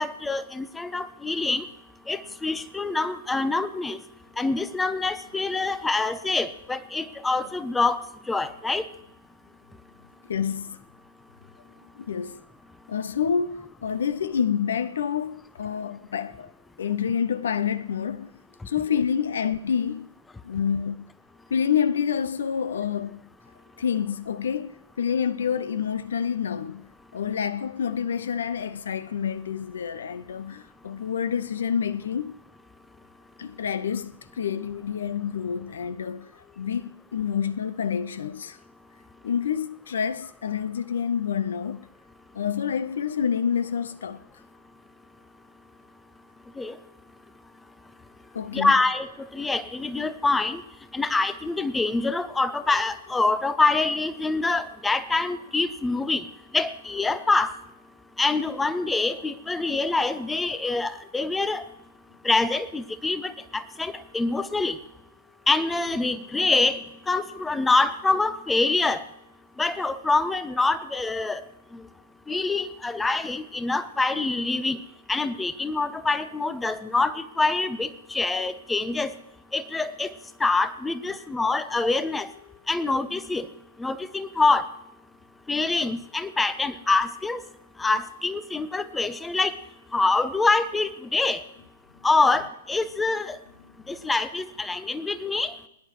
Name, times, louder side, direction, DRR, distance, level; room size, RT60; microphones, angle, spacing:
voice 1, 0.0-1.6 2.1-4.0 4.4-8.0 8.3-8.8 46.6-46.7 48.5-49.1 49.3-50.6 50.9-56.2 56.5-57.5 58.2-61.6 62.2-64.8 65.5-69.0 69.6-71.4 71.7-71.8 72.3-74.8 75.1-79.1 79.5-80.1 80.4-82.3 82.7-83.5 83.8-84.7 85.5-87.4 87.8-89.5 89.9-91.4 92.0-93.4 93.9-95.5, left 3 dB, 10° left, 0.6 m, -25 dB
voice 2, 10.3-10.8 12.0-12.4 12.9-16.5 16.8-18.4 18.7-20.1 20.4-21.1 21.5-23.2 23.8-32.4 33.4-36.3 36.6-38.6 39.2-41.9 42.3-44.2 48.3-48.7, left 7 dB, 60° left, 0.6 m, -28 dB
22.0 x 10.5 x 3.0 m
figure-of-eight pair, 110°, 0 cm